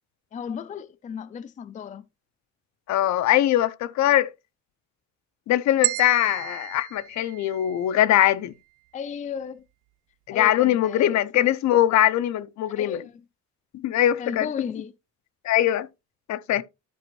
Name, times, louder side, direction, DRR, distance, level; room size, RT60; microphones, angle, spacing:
voice 1, 0.3-2.0 8.9-9.7 10.3-11.5 12.7-13.2 14.2-14.9, left 7 dB, 25° left, 0.4 m, -34 dB
voice 2, 2.9-4.3 5.5-8.5 10.3-13.0 13.7-14.5 15.4-15.9 16.3-16.6, left 12 dB, 65° left, 0.6 m, -21 dB
sound 1, 5.8-8.0, right 16 dB, 80° right, 0.5 m, -32 dB
12.5 x 5.2 x 3.0 m
cardioid pair, 160°, 31 cm